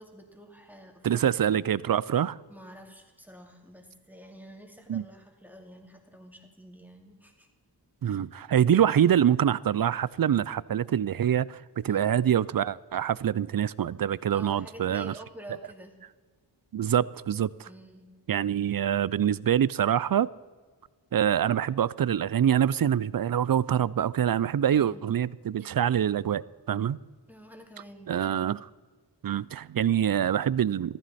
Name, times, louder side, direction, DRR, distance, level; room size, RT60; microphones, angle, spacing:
voice 1, 0.0-1.6 2.5-7.5 8.0-8.2 11.9-12.2 14.3-16.0 17.7-18.0 24.7-25.0 27.3-28.2, equal, 5° right, 2.3 m, -49 dB
voice 2, 1.0-2.4 4.9-5.0 8.0-15.1 16.7-17.7 18.3-20.3 21.1-27.0 28.1-28.6 29.2-31.0, right 9 dB, 50° right, 0.4 m, -25 dB
14.5 x 14.5 x 4.2 m
wide cardioid pair, 55°, 46 cm